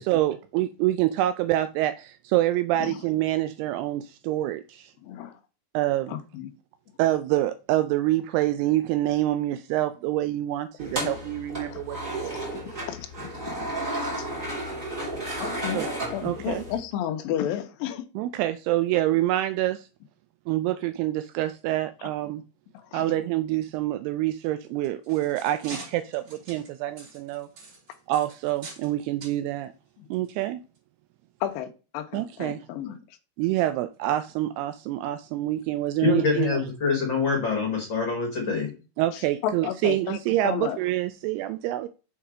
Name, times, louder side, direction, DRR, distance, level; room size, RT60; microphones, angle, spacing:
voice 1, 0.1-4.9 5.7-6.2 7.0-12.4 15.7-15.9 16.2-16.6 18.2-19.9 20.5-22.4 22.9-27.5 28.1-29.7 30.1-30.6 32.1-32.7 33.4-36.6 39.0-41.9, right 14 dB, 90° right, 2.3 m, -26 dB
voice 2, 5.0-5.4 6.1-6.5 11.7-11.8 12.2-14.3 15.4-15.8 16.1-18.1 22.9-23.0 31.4-31.7 31.9-33.0 39.1-40.2 40.4-40.8, left 10 dB, 80° left, 2.1 m, -32 dB
sound 1, 10.8-16.8, right 1 dB, 20° right, 1.4 m, -33 dB
sound 2, 24.7-28.9 29.2-29.4 30.1-30.3 30.8-30.9, right 3 dB, 45° right, 3.4 m, -44 dB
voice 3, 36.0-38.7, left 4 dB, 50° left, 1.4 m, -25 dB
7.1 x 4.6 x 4.9 m
omnidirectional pair, 5.2 m